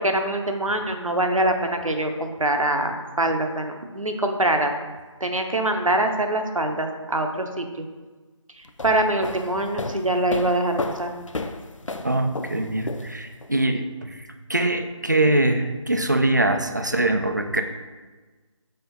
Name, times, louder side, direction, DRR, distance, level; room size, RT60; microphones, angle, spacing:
voice 1, 0.0-4.7 5.2-7.9 8.8-11.1, right 1 dB, 85° right, 4 dB, 0.9 m, -24 dB
sound 1, 8.6-13.5, left 2 dB, 75° left, 0.5 m, -33 dB
voice 2, 12.0-14.2 14.5-17.6, right 2 dB, 35° right, 6 dB, 0.4 m, -23 dB
6.9 x 3.8 x 3.9 m, 1.3 s
figure-of-eight pair, 165°, 17 cm